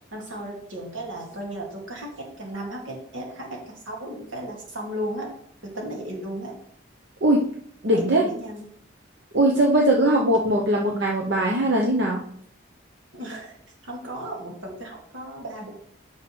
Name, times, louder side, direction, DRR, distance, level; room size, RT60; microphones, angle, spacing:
voice 1, 0.1-5.3 5.6-6.6 7.9-8.7 10.0-10.3 13.1-13.5 13.8-15.7, equal, 85° right, -1 dB, 2.3 m, -35 dB
voice 2, 7.8-8.2 9.3-12.2, right 1 dB, 65° right, -1 dB, 0.8 m, -20 dB
8.5 x 6.5 x 3.2 m, 0.64 s
head